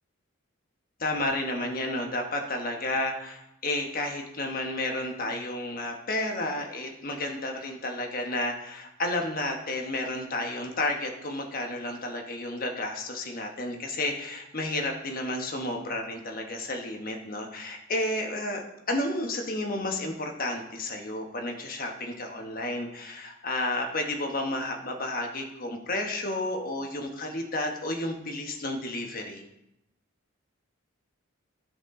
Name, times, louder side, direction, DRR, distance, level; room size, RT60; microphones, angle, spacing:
voice 1, 1.0-29.4, left 2 dB, 45° left, 3 dB, 1.1 m, -31 dB
13.0 x 5.3 x 3.7 m, 0.85 s
head